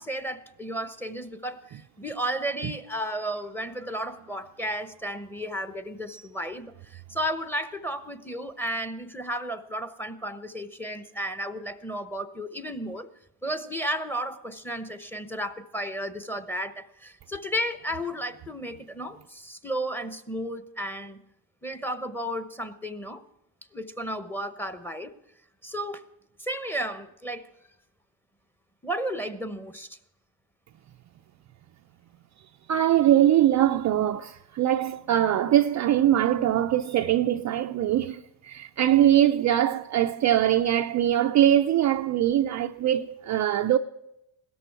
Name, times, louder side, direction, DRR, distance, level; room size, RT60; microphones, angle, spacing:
voice 1, 0.0-13.1 13.4-21.2 21.6-23.2 23.7-25.1 25.6-26.0 26.4-27.5 28.8-30.0, equal, 5° left, 0.9 m, -33 dB
voice 2, 32.7-43.8, right 11 dB, 35° right, 0.4 m, -22 dB
17.0 x 13.0 x 4.7 m
supercardioid pair, 95°, 49 cm